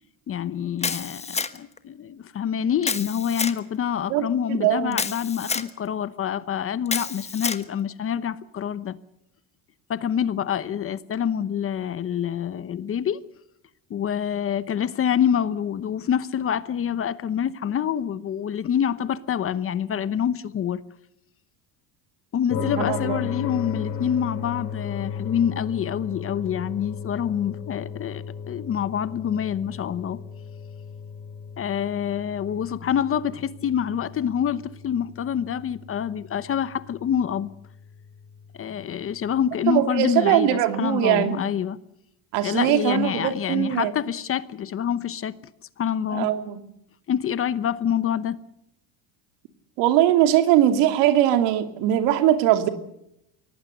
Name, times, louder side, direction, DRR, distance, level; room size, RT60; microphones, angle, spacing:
voice 1, 0.3-9.0 9.9-13.2 13.9-20.8 22.3-30.2 31.6-37.5 38.5-41.8 42.4-45.3 45.8-46.3 47.1-48.4, left 9 dB, 30° left, 1.0 m, -26 dB
Camera, 0.8-1.8 2.8-3.6 4.9-5.7 6.9-7.6, left 4 dB, 15° left, 1.3 m, -28 dB
voice 2, 4.1-5.0 22.6-23.2 39.7-41.4 42.3-43.9 46.1-46.6 49.8-52.7, right 12 dB, 75° right, 2.9 m, -21 dB
sound 1, 22.5-39.0, left 7 dB, 65° left, 4.1 m, -36 dB
24.0 x 18.5 x 6.7 m
cardioid pair, 135°, 43 cm